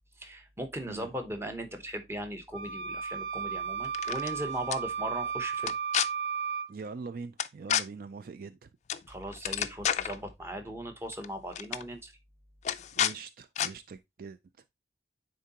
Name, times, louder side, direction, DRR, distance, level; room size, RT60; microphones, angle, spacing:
voice 1, 0.2-5.7 9.1-12.1, right 1 dB, 15° right, 0.9 m, -38 dB
sound 1, 2.5-6.7, right 6 dB, 85° right, 0.7 m, -34 dB
sound 2, 3.8-4.3 4.7-4.8 5.6-6.1 7.4-7.8 8.9-9.1 9.3-10.2 11.1-11.3 11.5-11.8 12.6-13.1 13.6-13.7, left 9 dB, 40° left, 0.4 m, -29 dB
voice 2, 6.7-8.7 13.0-14.4, right 4 dB, 55° right, 0.3 m, -43 dB
9.2 x 3.8 x 2.8 m
head